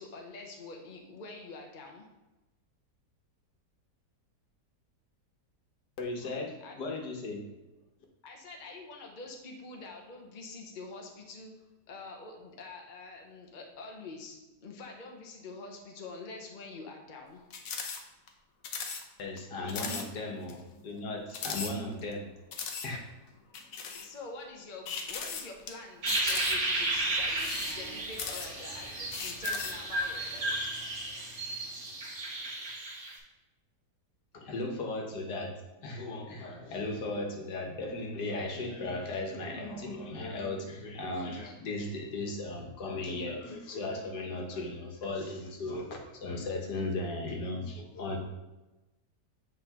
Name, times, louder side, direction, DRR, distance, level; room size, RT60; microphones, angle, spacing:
voice 1, 0.0-2.0 6.6-6.8 8.2-11.5 11.9-17.4 19.8-20.4 24.0-30.7, left 3 dB, 35° left, 1 dB, 0.9 m, -46 dB
voice 2, 6.0-7.4 19.2-22.3 22.8-23.0 34.3-35.5 35.8-48.2, left 2 dB, 80° left, 1 dB, 1.7 m, -36 dB
sound 1, 17.5-18.0 18.3-18.4 18.6-19.0 19.4-19.5 19.7-20.1 20.5-20.6 21.3-22.1 22.5-22.9 23.5-24.1 24.9-25.7 26.1-26.8 27.3-28.7 29.1-29.8, left 5 dB, 60° left, 1.1 m, -37 dB
sound 2, 26.0-33.1, right 2 dB, 80° right, 2.5 m, -33 dB
8.0 x 5.3 x 2.9 m, 1.1 s
omnidirectional pair, 1.8 m